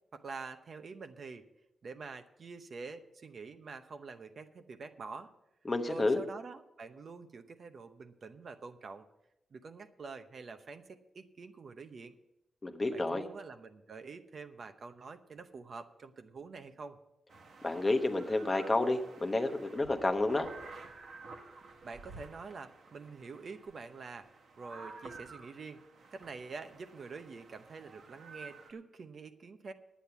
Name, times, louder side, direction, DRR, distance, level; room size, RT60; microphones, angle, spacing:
voice 1, 0.1-1.5 1.8-5.3 5.9-9.1 9.5-12.1 12.9-17.0 21.8-24.3 24.6-25.8 26.1-29.7, right 4 dB, 45° right, 8 dB, 0.8 m, -46 dB
voice 2, 5.6-6.2 12.6-13.2 17.6-20.5, left 2 dB, 20° left, 6 dB, 1.0 m, -30 dB
sound 1, 17.3-28.7, right 3 dB, 65° right, 1.6 m, -52 dB
10.0 x 9.2 x 6.9 m, 0.86 s
wide cardioid pair, 145°, 0 cm